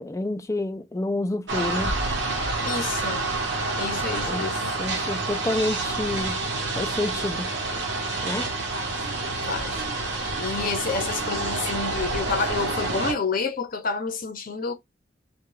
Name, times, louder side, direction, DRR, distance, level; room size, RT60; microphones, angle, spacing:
voice 1, 0.0-2.0 4.3-4.5 4.8-6.4 6.8-7.5 8.2-8.5, left 2 dB, 15° left, 0.3 m, -28 dB
sound 1, 1.5-13.1, right 3 dB, 80° right, 0.9 m, -28 dB
voice 2, 2.6-3.2 3.8-4.7 8.7-9.0 9.5-9.8 10.4-14.7, left 4 dB, 50° left, 0.6 m, -29 dB
2.3 x 2.2 x 3.1 m
head